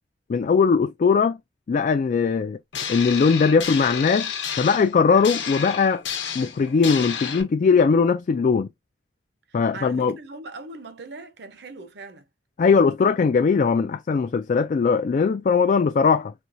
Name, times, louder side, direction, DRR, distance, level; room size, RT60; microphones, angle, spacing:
voice 1, 0.3-1.4 1.7-2.6 2.9-4.3 4.6-6.0 6.3-8.7 9.5-10.2 12.6-16.3, left 5 dB, 45° left, 0.3 m, -20 dB
sound 1, 2.7-7.4, left 7 dB, 80° left, 1.0 m, -31 dB
voice 2, 9.5-12.3, right 3 dB, 65° right, 0.7 m, -40 dB
4.3 x 2.3 x 2.6 m
head